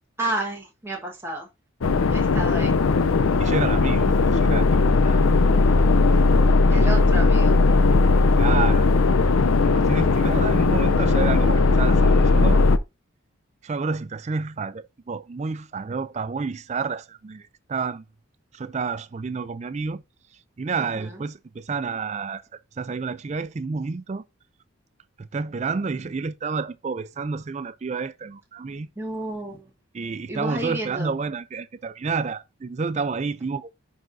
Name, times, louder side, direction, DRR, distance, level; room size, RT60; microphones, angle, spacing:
voice 1, 0.2-1.5 2.1-2.7 6.7-7.6 20.9-21.1 29.0-29.7 30.3-31.1, right 2 dB, 10° right, 1.3 m, -31 dB
sound 1, 1.8-12.8, left 3 dB, 80° left, 0.5 m, -18 dB
voice 2, 3.4-5.2 6.7-7.1 8.3-8.9 9.6-12.6 13.6-18.1 18.5-20.0 20.6-24.2 25.2-28.9 29.9-33.7, right 4 dB, 30° right, 0.3 m, -30 dB
10.5 x 4.1 x 2.6 m
head